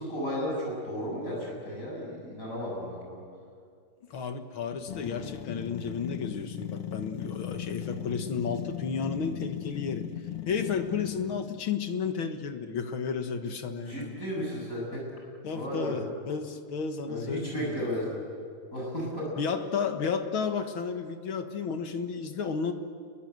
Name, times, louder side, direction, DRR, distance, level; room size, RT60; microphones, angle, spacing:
voice 1, 0.0-3.2 13.9-15.1 15.5-16.1 17.1-18.2 18.7-19.4, equal, 35° left, -3 dB, 7.7 m, -34 dB
voice 2, 4.1-10.1 10.5-14.2 15.4-17.9 19.4-22.7, left 5 dB, 70° left, 7 dB, 2.3 m, -32 dB
sound 1, 4.9-11.7, left 11 dB, 90° left, 2.0 m, -37 dB
29.0 x 22.5 x 7.9 m, 2.2 s
omnidirectional pair, 2.4 m